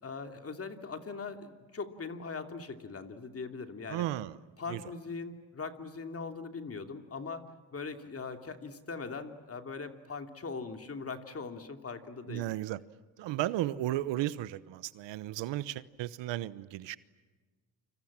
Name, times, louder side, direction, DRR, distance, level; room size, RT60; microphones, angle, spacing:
voice 1, 0.0-4.0 4.6-7.4 7.7-12.5, left 4 dB, 35° left, 2.9 m, -41 dB
voice 2, 3.9-4.3 4.7-4.8 12.3-12.8 13.2-17.0, right 14 dB, 90° right, 1.0 m, -34 dB
29.5 x 26.5 x 7.4 m
cardioid pair, 100°, 42 cm